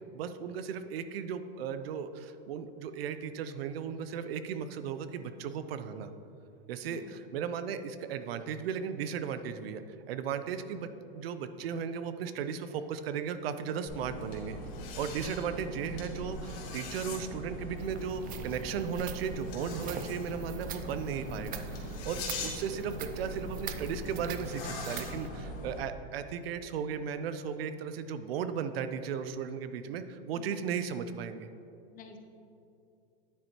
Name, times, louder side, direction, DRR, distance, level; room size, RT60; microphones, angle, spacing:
voice 1, 0.1-6.1 6.7-9.8 10.1-14.6 15.0-31.5, right 7 dB, 80° right, 11 dB, 0.6 m, -36 dB
voice 2, 6.9-7.2 21.1-21.5 30.4-30.9 31.9-32.2, left 5 dB, 30° left, 4 dB, 0.8 m, -52 dB
sound 1, 13.9-25.8, left 1 dB, 65° left, 1.9 m, -41 dB
sound 2, 17.8-25.3, right 9 dB, 30° right, 0.5 m, -45 dB
9.5 x 7.8 x 3.0 m, 2.7 s
supercardioid pair, 125°, 29 cm